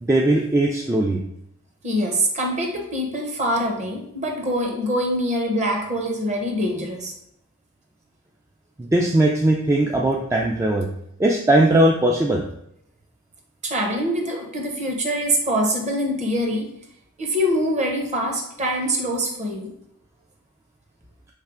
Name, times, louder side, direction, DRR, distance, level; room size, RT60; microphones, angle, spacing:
voice 1, 0.0-1.2 8.8-10.9 11.2-12.4, right 1 dB, 15° right, -1 dB, 0.3 m, -19 dB
voice 2, 1.8-7.1 13.6-16.7 17.2-19.7, equal, 35° right, 2 dB, 0.8 m, -24 dB
3.3 x 3.2 x 4.8 m, 0.75 s
head